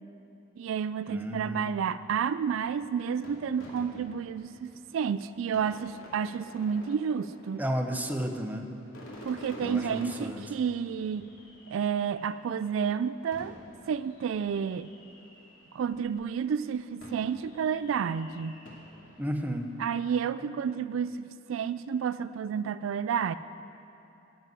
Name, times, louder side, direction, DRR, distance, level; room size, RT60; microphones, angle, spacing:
voice 1, 0.6-7.6 9.2-11.3 11.7-13.6 13.9-14.9 15.7-18.6 19.8-23.4, right 7 dB, 70° right, 13 dB, 0.3 m, -30 dB
voice 2, 1.1-1.7 7.6-8.7 9.6-10.4 19.2-19.7, equal, 10° right, 5 dB, 0.7 m, -32 dB
sound 1, 2.5-16.2 17.0-20.1, left 1 dB, 85° left, 2.5 m, -50 dB
11.0 x 7.7 x 9.2 m, 2.8 s
head